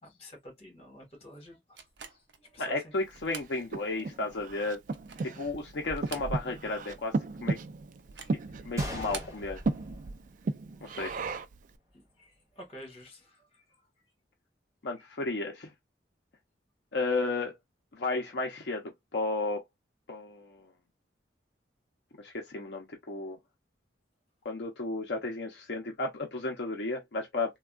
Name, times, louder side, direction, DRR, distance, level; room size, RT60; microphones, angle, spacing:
voice 1, 0.0-1.8 2.1-2.9 5.2-5.3 8.1-8.7 11.0-11.2 11.9-13.8, equal, 35° left, 1.5 m, -50 dB
sound 1, 1.8-2.4 3.1-3.6 4.0-4.1 4.8-5.4 5.9-6.7 7.0-7.1 8.0-8.4 8.9-9.4, right 6 dB, 75° right, 0.7 m, -45 dB
voice 2, 2.6-4.8 5.4-7.6 8.6-9.6 10.8-11.1 14.8-15.7 16.9-17.6 17.9-19.6 20.1-20.7 22.2-23.4 24.4-27.6, left 3 dB, 65° left, 0.6 m, -33 dB
Breathing, 3.1-11.7, right 3 dB, 45° right, 0.3 m, -35 dB
Gunshot gunfire, 8.8-10.8 11.1-11.2 11.9-12.1, equal, 15° right, 1.7 m, -41 dB
3.4 x 2.3 x 2.3 m
head